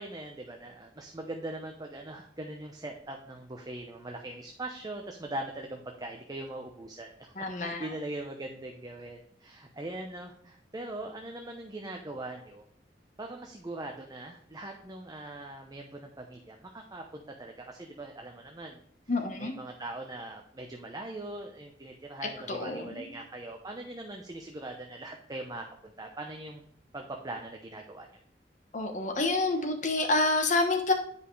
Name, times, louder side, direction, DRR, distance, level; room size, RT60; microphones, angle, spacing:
voice 1, 0.0-12.6 13.2-18.8 19.4-26.7 26.9-28.1, right 2 dB, 20° right, 2 dB, 0.8 m, -41 dB
voice 2, 7.3-7.9 19.1-19.6 22.2-23.1 28.7-30.9, left 2 dB, 45° left, 3 dB, 1.1 m, -28 dB
10.0 x 5.4 x 3.2 m, 0.66 s
head